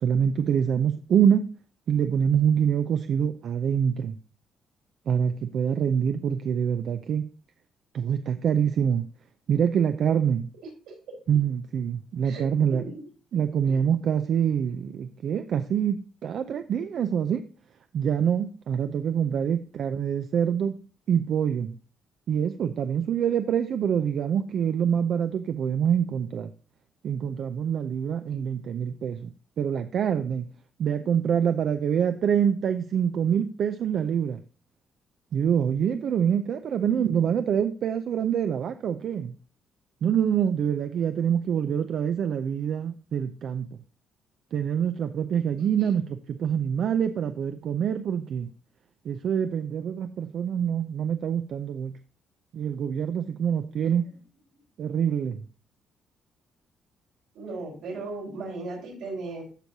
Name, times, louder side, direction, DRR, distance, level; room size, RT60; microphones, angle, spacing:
voice 1, 0.0-1.5 1.9-4.2 5.1-7.2 7.9-9.0 9.5-10.5 11.3-12.8 13.3-17.4 17.9-20.8 21.1-21.7 22.3-26.5 27.0-29.3 29.6-30.4 30.8-34.4 35.3-39.3 40.0-43.7 44.5-48.5 49.0-51.9 52.5-54.1 54.8-55.4, right 8 dB, 65° right, 0.5 m, -25 dB
voice 2, 36.7-37.3 45.8-45.9 57.3-59.4, right 3 dB, 90° right, 4.0 m, -37 dB
13.5 x 4.6 x 2.8 m
cardioid pair, 90°, 0 cm